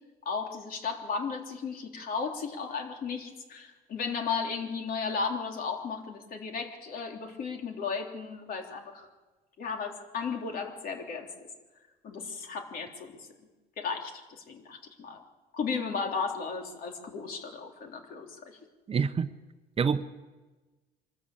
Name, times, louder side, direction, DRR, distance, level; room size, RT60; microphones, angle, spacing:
voice 1, 0.2-9.1 9.6-11.3 12.0-13.2 13.8-15.2 15.5-18.6, left 5 dB, 60° left, 3.5 m, -35 dB
voice 2, 18.9-19.3 19.8-20.0, right 6 dB, 35° right, 0.8 m, -26 dB
24.5 x 13.5 x 8.4 m
cardioid pair, 110°, 17 cm